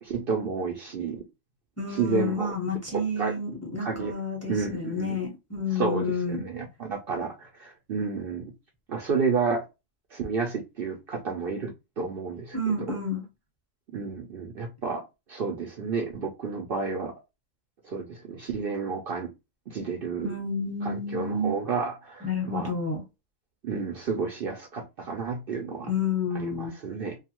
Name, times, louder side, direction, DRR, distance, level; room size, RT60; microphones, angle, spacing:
voice 1, 0.0-1.2 1.9-2.5 2.9-3.4 3.8-4.1 4.5-5.2 5.7-8.5 8.9-9.7 10.1-13.0 13.9-17.1 17.8-19.3 19.7-20.3 20.8-22.7 23.6-25.9 26.3-27.2, right 5 dB, 55° right, 0.7 m, -31 dB
voice 2, 1.8-6.4 12.5-13.2 20.2-21.5 22.2-23.0 25.9-26.7, left 3 dB, 15° left, 0.8 m, -30 dB
2.7 x 2.3 x 2.9 m
omnidirectional pair, 1.3 m